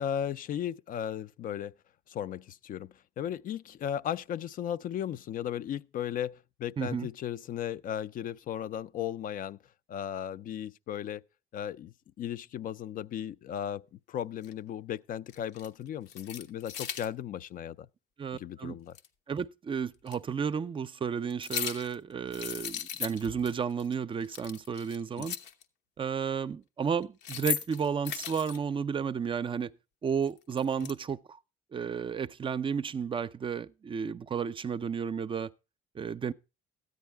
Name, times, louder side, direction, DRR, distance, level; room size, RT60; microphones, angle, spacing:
voice 1, 0.0-1.7 2.1-9.6 9.9-11.2 11.5-17.9 18.3-19.0 25.2-25.3 30.8-30.9, left 10 dB, 55° left, 0.4 m, -36 dB
voice 2, 6.8-7.1 18.2-18.7 19.3-25.4 26.0-29.7 30.0-31.4 31.7-35.5 35.9-36.3, right 6 dB, 30° right, 0.5 m, -32 dB
sound 1, 14.4-14.5 15.3-15.7 16.1-17.1 18.9-19.1 20.1-20.2 21.3-21.9 22.3-23.5 23.8-23.9 24.2-25.6 27.0-28.6 30.2-30.9, left 9 dB, 85° left, 1.0 m, -37 dB
13.5 x 9.4 x 3.4 m
cardioid pair, 110°, 17 cm